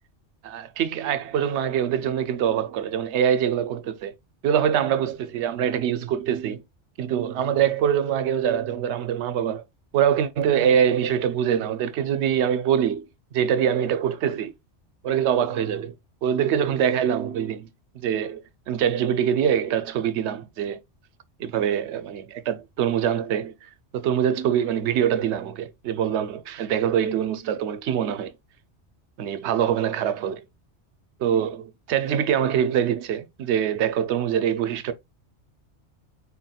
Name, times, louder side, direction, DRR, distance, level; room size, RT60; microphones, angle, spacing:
voice 1, 0.4-4.1 4.4-6.6 7.0-9.6 9.9-13.1 13.3-14.5 15.0-15.9 16.2-17.7 17.9-20.8 21.4-28.3 29.2-30.4 31.2-34.9, right 9 dB, 80° right, 0.9 m, -24 dB
4.2 x 4.0 x 2.2 m
omnidirectional pair, 1.2 m